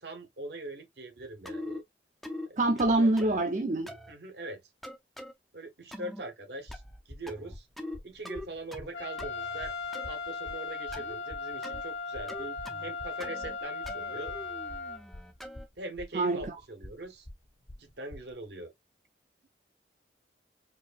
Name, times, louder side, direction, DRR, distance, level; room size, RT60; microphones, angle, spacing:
voice 1, 0.0-1.8 2.5-2.6 3.0-3.1 4.1-4.6 5.5-6.8 7.1-7.7 8.0-9.7 10.1-14.3 15.8-17.3 17.8-18.7, right 2 dB, 70° right, 1.0 m, -42 dB
sound 1, 1.4-1.8 2.2-2.5 2.8-3.4 3.9-4.1 4.8-5.3 5.9-6.2 6.7-7.0 7.3-8.0 8.2-8.9 9.2-10.1 10.9-11.2 11.6-11.8 12.3-12.9 13.2-13.6 13.9-15.7, left 1 dB, ahead, 0.5 m, -42 dB
voice 2, 2.6-3.9 16.1-16.5, right 2 dB, 45° right, 0.6 m, -25 dB
sound 2, 6.6-18.4, left 1 dB, 30° left, 0.8 m, -47 dB
Trumpet, 8.9-15.0, left 4 dB, 90° left, 0.8 m, -37 dB
4.5 x 2.6 x 2.4 m
head